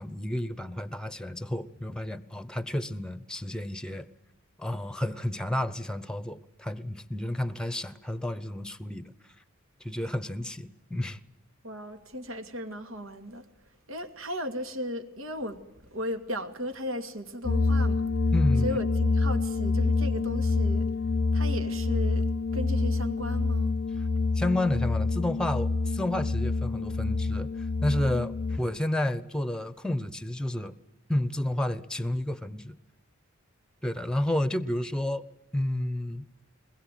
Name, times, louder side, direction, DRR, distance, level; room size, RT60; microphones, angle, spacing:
voice 1, 0.0-4.1 4.6-9.1 9.8-11.2 18.3-18.8 24.0-24.1 24.3-30.8 31.1-32.8 33.8-35.2 35.5-36.2, left 1 dB, 5° left, 0.9 m, -31 dB
voice 2, 11.6-13.5 13.9-15.6 15.9-18.0 18.6-20.9 21.3-22.3 22.5-23.7, equal, 80° right, 2.4 m, -35 dB
sound 1, 17.4-28.6, left 3 dB, 70° left, 0.8 m, -27 dB
22.5 x 21.0 x 9.2 m
head